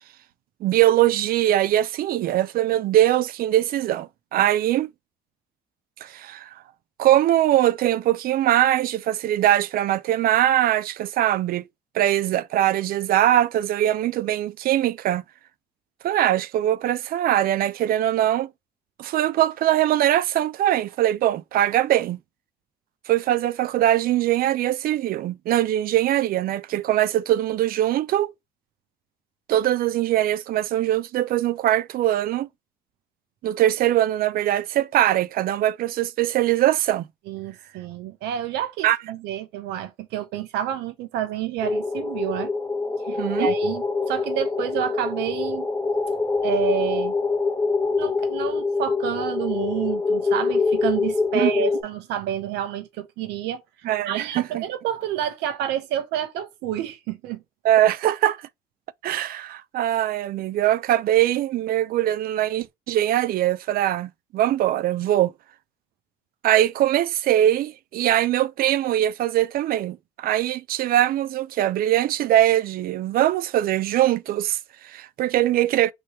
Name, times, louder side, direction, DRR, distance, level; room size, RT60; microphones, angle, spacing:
voice 1, 0.6-4.9 6.0-6.5 7.0-11.6 11.9-15.2 16.0-18.5 19.0-22.2 23.1-28.3 29.5-32.5 33.4-37.0 38.8-39.0 43.1-43.5 51.3-51.5 53.8-54.6 57.6-58.5 59.0-65.3 66.4-75.9, right 13 dB, 60° right, 0.5 m, -22 dB
voice 2, 37.3-42.5 43.1-45.7 46.4-47.1 48.0-53.6 54.1-57.4, right 11 dB, 85° right, 0.9 m, -29 dB
sound 1, 41.6-51.8, left 4 dB, 10° left, 1.2 m, -24 dB
3.1 x 3.1 x 4.3 m
cardioid pair, 110°, 17 cm